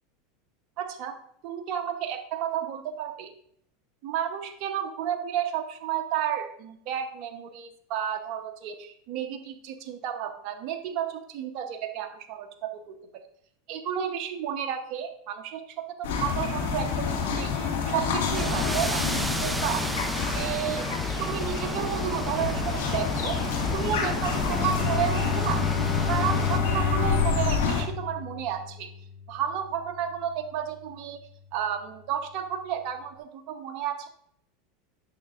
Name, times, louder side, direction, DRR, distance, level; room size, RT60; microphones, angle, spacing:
voice 1, 0.8-1.2 1.4-3.3 4.0-13.2 13.7-15.6 16.0-19.9 20.3-20.8 21.2-23.4 23.7-25.6 26.0-28.9 29.3-31.2 31.5-34.1, right 9 dB, 55° right, 5 dB, 0.9 m, -32 dB
sound 1, 16.0-27.8, left 5 dB, 80° left, 2.0 m, -29 dB
sound 2, 18.3-26.6, right 1 dB, 5° right, 0.5 m, -33 dB
Bowed string instrument, 24.5-30.2, left 5 dB, 35° left, 0.8 m, -30 dB
8.6 x 6.5 x 2.4 m, 0.67 s
supercardioid pair, 120°, 0 cm